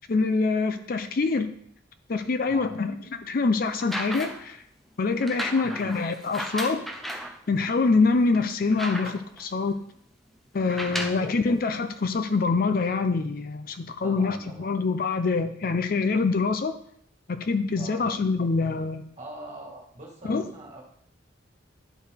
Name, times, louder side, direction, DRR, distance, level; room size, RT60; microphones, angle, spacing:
voice 1, 0.1-1.5 2.1-4.6 5.0-6.8 7.5-9.8 10.5-16.7 17.3-19.0 20.2-20.5, left 4 dB, 45° left, 9 dB, 0.5 m, -25 dB
voice 2, 2.5-2.8 5.6-6.0 10.9-11.3 14.0-14.7 17.8-18.1 19.2-20.8, right 1 dB, 35° right, -2 dB, 1.9 m, -43 dB
sound 1, 3.7-4.5 5.2-7.4 7.9-8.0 8.3-9.4 10.6-11.3 12.2-12.3, equal, ahead, 0.5 m, -35 dB
11.0 x 4.5 x 3.4 m, 0.65 s
head